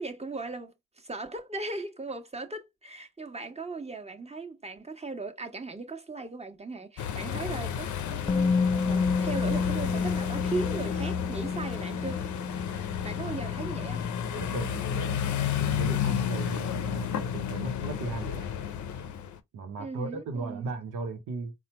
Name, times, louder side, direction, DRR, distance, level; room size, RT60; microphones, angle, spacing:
voice 1, 0.0-12.2 13.0-14.1 16.1-16.2 19.8-20.7, right 3 dB, 20° right, 1.2 m, -38 dB
sound 1, 7.0-19.4, left 9 dB, 75° left, 0.6 m, -32 dB
Musical instrument, 8.3-16.2 16.5-16.6, left 4 dB, 20° left, 0.3 m, -31 dB
voice 2, 14.3-18.5 19.5-21.5, right 4 dB, 85° right, 0.9 m, -37 dB
4.3 x 2.3 x 4.2 m
supercardioid pair, 45°, 30 cm